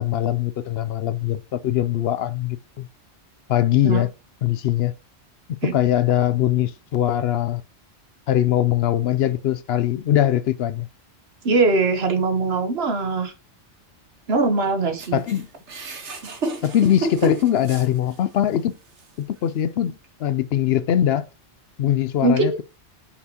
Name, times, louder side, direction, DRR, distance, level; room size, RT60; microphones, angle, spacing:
voice 1, 0.0-2.9 3.5-4.1 4.4-4.9 5.7-7.6 8.3-10.9 15.1-15.5 16.6-18.7 19.3-19.9 20.2-21.2 21.8-22.6, left 11 dB, 70° left, 0.7 m, -21 dB
voice 2, 11.4-13.3 14.3-15.2 22.2-22.6, right 3 dB, 65° right, 1.3 m, -21 dB
sound 1, 15.0-18.4 19.0-19.1 20.0-20.1, right 2 dB, 80° right, 1.6 m, -30 dB
6.0 x 5.8 x 2.8 m
omnidirectional pair, 1.2 m